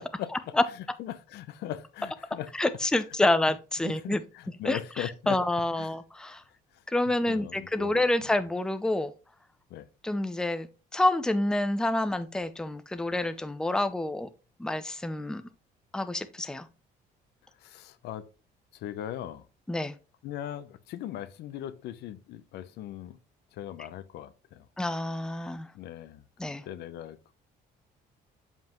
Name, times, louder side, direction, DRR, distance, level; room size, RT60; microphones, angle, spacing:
voice 1, 0.0-2.5 3.8-5.4 5.8-5.9 6.3-6.4 6.7-6.8 7.3-8.0 9.7-9.9 17.6-18.3 18.7-19.4 20.2-23.2 23.5-24.7 25.7-26.2 26.6-27.3, left 11 dB, 80° left, 0.7 m, -39 dB
voice 2, 2.6-4.2 4.6-6.4 6.9-9.1 10.0-10.7 10.9-14.3 14.6-15.4 15.9-16.7 19.7-19.9 24.8-25.7 26.4-26.6, left 1 dB, 5° left, 0.5 m, -28 dB
7.4 x 5.5 x 3.0 m
cardioid pair, 110°, 17 cm